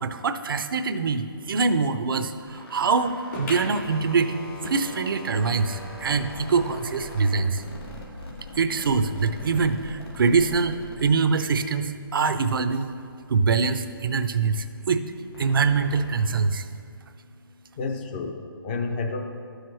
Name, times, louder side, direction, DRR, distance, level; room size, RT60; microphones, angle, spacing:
voice 1, 0.0-7.6 8.5-12.9 13.3-15.1 15.4-16.7, right 4 dB, 65° right, 10 dB, 0.6 m, -24 dB
sound 1, 1.4-12.0 12.4-16.2, left 1 dB, 85° left, 1.9 m, -42 dB
sound 2, 3.3-6.3 6.7-6.8 7.0-7.1 7.9-8.0, left 1 dB, 50° left, 2.3 m, -39 dB
voice 2, 17.8-19.2, left 4 dB, 25° left, 4 dB, 0.5 m, -30 dB
12.5 x 6.4 x 3.2 m, 2.3 s
hypercardioid pair, 160°, 13 cm